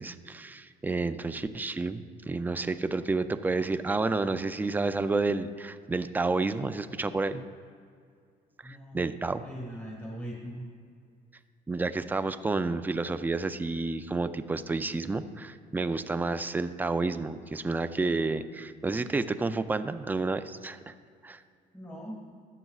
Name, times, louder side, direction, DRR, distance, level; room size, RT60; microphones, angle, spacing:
voice 1, 0.0-7.5 8.6-9.4 11.7-20.9 21.2-21.4, right 3 dB, 10° right, 11 dB, 0.4 m, -30 dB
voice 2, 8.6-9.0 9.3-10.6 21.7-22.3, equal, 10° left, -3 dB, 1.6 m, -40 dB
14.0 x 11.0 x 2.4 m, 2.2 s
cardioid pair, 110°, 17 cm